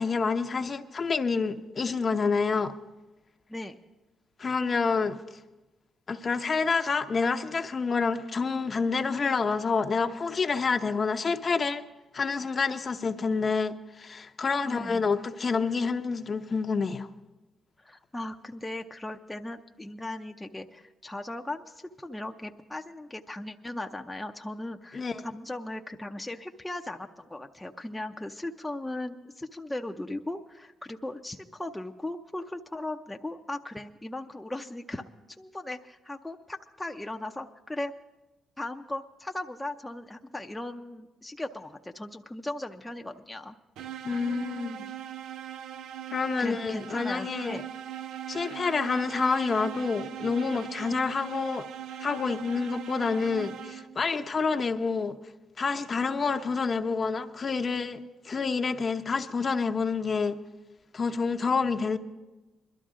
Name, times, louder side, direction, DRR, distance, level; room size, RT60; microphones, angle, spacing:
voice 1, 0.0-2.7 4.4-5.2 6.1-11.8 12.1-17.1 24.9-25.2 44.0-44.9 46.1-47.6 48.3-51.7 52.0-55.2 55.6-58.0 58.2-60.4 60.9-62.0, left 4 dB, 40° left, 0.7 m, -28 dB
voice 2, 14.6-15.1 17.8-35.1 35.4-37.9 38.6-43.6 46.4-47.6, left 1 dB, 10° left, 0.6 m, -38 dB
sound 1, 43.8-54.1, right 10 dB, 85° right, 0.4 m, -40 dB
21.5 x 12.5 x 3.7 m
cardioid pair, 90°, 0 cm